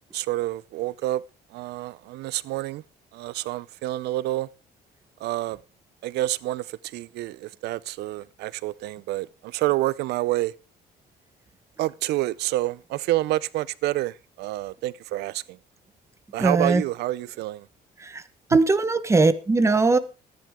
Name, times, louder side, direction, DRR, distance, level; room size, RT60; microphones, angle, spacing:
voice 1, 0.1-1.2 1.5-2.8 3.1-4.5 5.2-5.6 6.0-10.5 11.8-15.6 16.3-17.7 18.5-18.6, right 16 dB, 80° right, 0.6 m, -28 dB
voice 2, 16.4-16.8 18.0-18.2 18.5-20.0, right 3 dB, 15° right, 1.1 m, -20 dB
13.5 x 10.5 x 3.7 m
cardioid pair, 110°, 17 cm